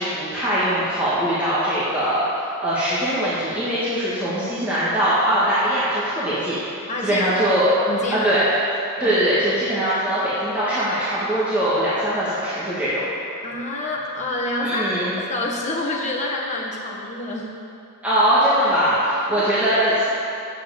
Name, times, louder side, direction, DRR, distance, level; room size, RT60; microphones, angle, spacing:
voice 1, 0.0-2.2 2.6-7.7 8.1-8.4 9.0-13.0 14.6-15.1 18.0-20.1, equal, 5° right, -12 dB, 1.9 m, -21 dB
voice 2, 6.9-7.3 7.9-8.3 9.0-9.2 13.4-17.6 19.4-19.5, left 2 dB, 35° left, -3 dB, 1.6 m, -27 dB
8.0 x 7.5 x 8.4 m, 2.6 s
head